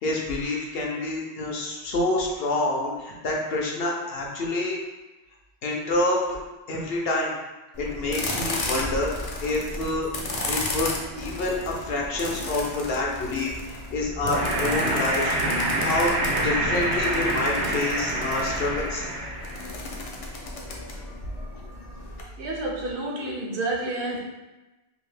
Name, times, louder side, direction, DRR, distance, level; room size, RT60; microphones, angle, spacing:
voice 1, 0.0-4.8 5.6-6.2 6.7-7.3 7.8-10.1 10.4-16.1 16.4-19.0, left 2 dB, 70° left, -2 dB, 0.8 m, -27 dB
sound 1, 7.7-22.2, left 2 dB, 50° left, 0.4 m, -34 dB
sound 2, 14.2-19.7, right 1 dB, 85° right, 1.0 m, -26 dB
voice 2, 22.4-24.2, right 2 dB, 60° right, -2 dB, 0.7 m, -29 dB
2.7 x 2.6 x 3.2 m, 1.1 s
omnidirectional pair, 1.1 m